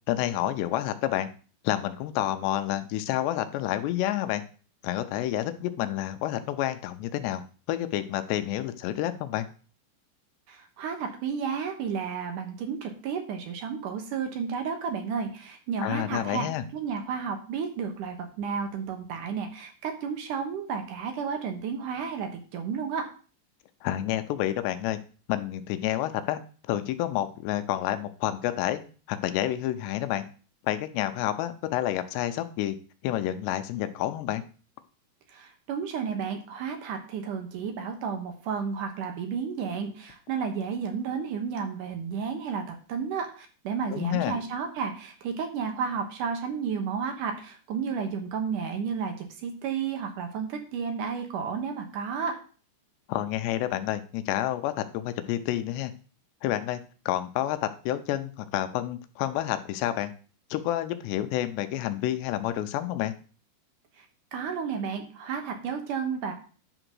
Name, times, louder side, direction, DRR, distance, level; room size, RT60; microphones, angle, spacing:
voice 1, 0.1-1.3 1.6-4.4 4.8-7.4 7.7-9.5 15.8-16.6 23.8-25.0 25.3-26.4 26.7-28.8 29.1-30.2 30.6-32.8 33.0-34.4 43.9-44.4 53.1-55.9 56.4-56.8 57.1-60.1 60.5-63.1, left 13 dB, 90° left, 10 dB, 2.9 m, -29 dB
voice 2, 10.5-23.0 35.3-52.4 64.3-66.3, right 6 dB, 70° right, 5 dB, 2.1 m, -32 dB
11.0 x 3.9 x 6.2 m, 0.38 s
omnidirectional pair, 4.9 m